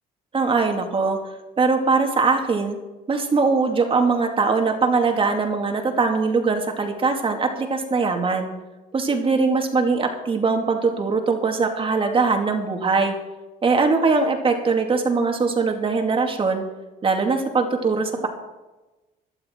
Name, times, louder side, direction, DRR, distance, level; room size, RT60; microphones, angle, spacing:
voice 1, 0.3-1.3 1.6-2.8 3.1-8.5 8.9-13.1 13.6-16.6 17.0-18.3, right 4 dB, 30° right, 3 dB, 2.4 m, -21 dB
16.0 x 12.0 x 4.6 m, 1.1 s
cardioid pair, 110°, 17 cm